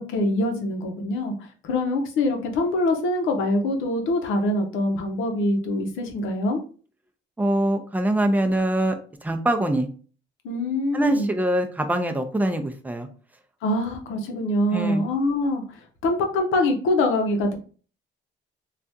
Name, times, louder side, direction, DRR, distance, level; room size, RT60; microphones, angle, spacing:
voice 1, 0.0-1.3 1.6-6.6 10.4-11.3 13.6-17.5, left 1 dB, 90° left, 4 dB, 0.7 m, -24 dB
voice 2, 7.4-9.0 9.2-9.9 10.9-13.1 14.7-15.0, right 1 dB, 10° right, 5 dB, 0.5 m, -23 dB
3.4 x 2.4 x 2.7 m, 0.40 s
cardioid pair, 90°, 20 cm